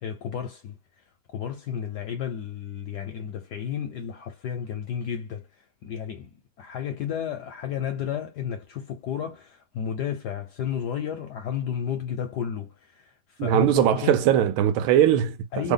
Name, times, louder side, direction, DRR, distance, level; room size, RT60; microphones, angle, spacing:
voice 1, 0.0-0.8 1.3-5.5 5.8-14.2 15.5-15.7, left 8 dB, 70° left, 1.0 m, -32 dB
voice 2, 13.4-15.4 15.6-15.7, right 10 dB, 80° right, 1.4 m, -20 dB
3.5 x 2.1 x 3.7 m
omnidirectional pair, 2.4 m